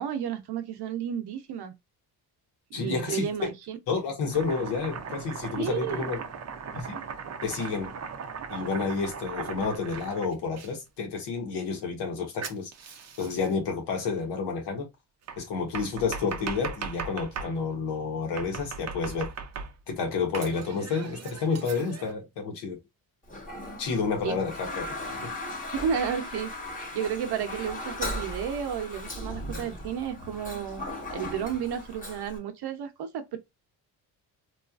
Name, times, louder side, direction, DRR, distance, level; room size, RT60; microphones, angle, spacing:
voice 1, 0.0-1.7 2.7-3.8 5.6-6.1 24.2-24.4 25.7-26.5 26.9-30.8 31.1-33.4, right 8 dB, 65° right, 0.8 m, -32 dB
voice 2, 2.7-3.5 3.9-6.2 6.7-7.0 7.4-8.0 8.5-12.7 13.2-14.9 15.4-19.3 19.9-22.8 23.8-25.3, left 4 dB, 80° left, 1.2 m, -30 dB
Domestic sounds home sounds, 4.3-10.7 12.4-13.5 15.3-17.6 18.4-19.9 20.3-22.1, right 6 dB, 40° right, 0.6 m, -38 dB
Toilet flush, 23.3-32.4, left 1 dB, 20° left, 1.2 m, -37 dB
3.0 x 2.4 x 2.4 m
cardioid pair, 95°, 42 cm